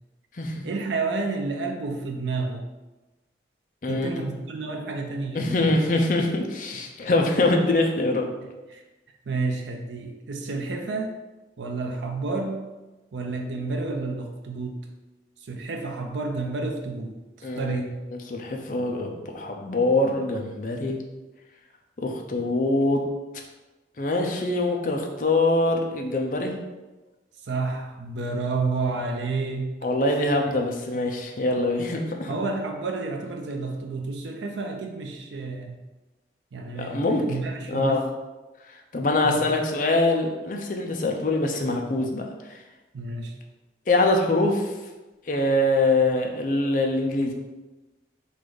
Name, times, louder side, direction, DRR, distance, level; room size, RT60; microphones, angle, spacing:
voice 1, 0.6-2.6 3.8-5.7 8.7-8.8 9.3-11.2 11.6-12.7 13.1-14.8 15.5-17.2 17.6-17.9 27.4-29.7 32.3-35.8 36.5-38.0 39.2-39.4 42.9-43.3, right 3 dB, 80° right, 3 dB, 0.5 m, -30 dB
voice 2, 3.8-4.2 5.3-8.3 17.4-17.9 18.3-21.0 22.0-23.0 24.0-26.5 29.8-32.3 36.8-37.2 37.7-38.1 38.9-42.2 42.5-42.6 43.9-44.7 45.3-47.3, left 2 dB, 45° left, 2 dB, 0.6 m, -24 dB
4.0 x 2.5 x 4.7 m, 1.1 s
head